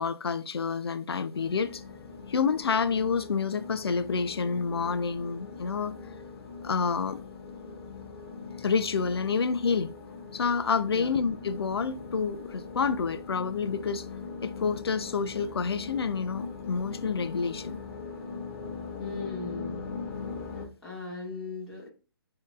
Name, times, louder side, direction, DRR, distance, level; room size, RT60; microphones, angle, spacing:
voice 1, 0.0-1.8 2.3-6.0 6.6-7.2 8.6-9.9 10.3-14.1 14.4-17.8, left 5 dB, 85° left, 0.4 m, -28 dB
sound 1, 1.3-20.7, left 4 dB, 35° left, 1.1 m, -41 dB
voice 2, 19.0-19.9 20.8-21.9, left 3 dB, 5° left, 1.8 m, -38 dB
6.4 x 2.8 x 2.4 m
hypercardioid pair, 150°, 13 cm